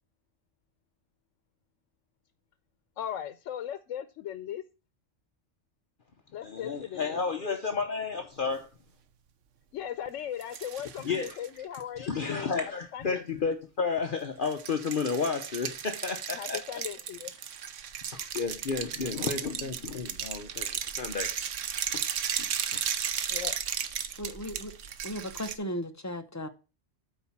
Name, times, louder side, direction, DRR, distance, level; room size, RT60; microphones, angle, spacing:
voice 1, 3.0-4.6 6.3-7.2 9.7-12.5 12.9-13.2 16.3-17.3 19.5-19.9 23.3-23.6, left 10 dB, 90° left, 1.0 m, -38 dB
voice 2, 6.4-8.7 11.0-11.4 12.0-16.6 18.1-20.7 20.9-21.3 21.9-22.0 22.6-22.8, left 5 dB, 50° left, 1.0 m, -32 dB
sound 1, 10.4-11.8 14.4-25.6, right 8 dB, 90° right, 1.1 m, -35 dB
voice 3, 24.2-24.7 25.0-26.5, equal, 15° left, 0.7 m, -36 dB
8.6 x 4.4 x 7.2 m
omnidirectional pair, 1.3 m